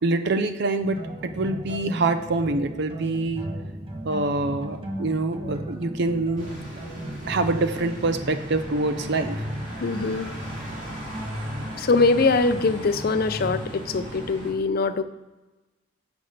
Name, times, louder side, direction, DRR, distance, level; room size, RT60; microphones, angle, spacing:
voice 1, 0.0-3.5 4.0-6.5 7.3-9.4, right 2 dB, 65° right, 10 dB, 0.6 m, -25 dB
sound 1, 0.8-14.3, equal, 30° right, 1.2 m, -36 dB
sound 2, 6.4-14.5, right 1 dB, 45° right, 2.6 m, -38 dB
voice 2, 9.8-10.3 11.8-15.0, left 3 dB, 55° left, 11 dB, 0.5 m, -22 dB
5.8 x 5.3 x 6.5 m, 1.2 s
head